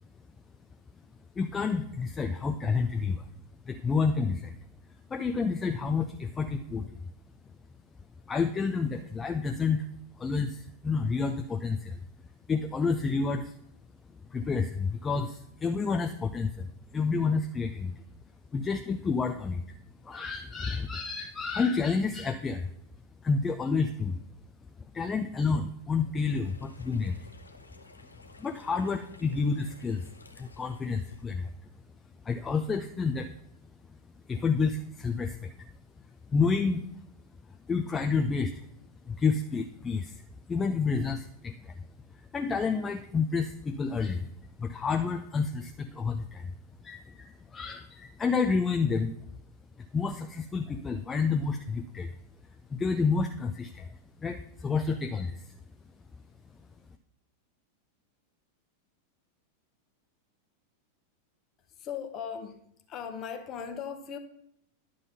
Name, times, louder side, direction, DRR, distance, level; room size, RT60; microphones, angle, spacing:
voice 1, 1.4-3.3 3.6-4.6 5.1-7.0 8.3-9.9 10.2-12.0 12.5-13.5 14.3-16.7 16.9-18.0 18.5-19.8 20.0-22.7 23.2-24.2 24.9-27.3 28.4-30.1 30.3-31.5 32.2-33.3 34.3-35.7 36.3-36.8 37.7-38.7 39.0-41.9 42.1-44.3 44.6-46.5 46.8-49.1 49.8-52.2 52.7-55.6, left 4 dB, 15° left, 6 dB, 0.4 m, -29 dB
sound 1, 26.1-31.2, left 2 dB, 80° left, 0.6 m, -54 dB
voice 2, 61.7-62.6 62.9-64.2, left 7 dB, 35° left, 7 dB, 1.0 m, -38 dB
10.5 x 3.8 x 5.5 m, 0.75 s
figure-of-eight pair, 90°, 0 cm